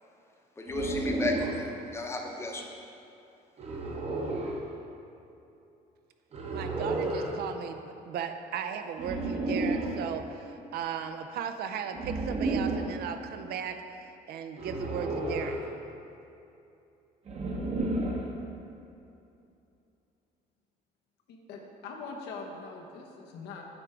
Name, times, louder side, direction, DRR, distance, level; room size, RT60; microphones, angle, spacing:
voice 1, 0.6-2.7, left 2 dB, 15° left, 0 dB, 0.8 m, -33 dB
sound 1, 0.7-1.6 3.6-4.6 6.3-7.3 9.0-10.0 11.9-12.9 14.6-15.6 17.3-18.3, right 2 dB, 40° right, 0.9 m, -32 dB
voice 2, 6.5-15.6, right 7 dB, 70° right, 7 dB, 0.5 m, -37 dB
voice 3, 21.3-23.6, left 4 dB, 85° left, 1 dB, 0.9 m, -42 dB
8.8 x 3.3 x 4.7 m, 2.7 s
cardioid pair, 110°, 17 cm